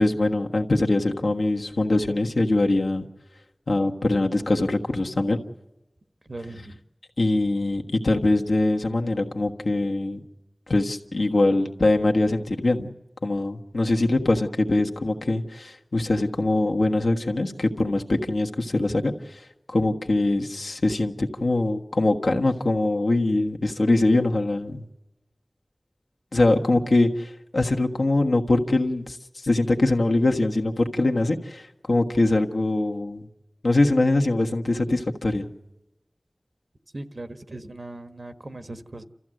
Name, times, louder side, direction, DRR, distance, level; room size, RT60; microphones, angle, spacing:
voice 1, 0.0-3.1 3.7-5.4 7.2-10.2 10.7-12.9 13.2-19.4 19.7-24.8 26.3-33.3 33.6-35.5, left 2 dB, 85° left, 1 dB, 1.4 m, -23 dB
voice 2, 6.3-6.8 36.9-39.0, right 2 dB, 60° right, 7 dB, 1.3 m, -38 dB
29.5 x 14.0 x 7.7 m, 0.98 s
wide cardioid pair, 50°, 0 cm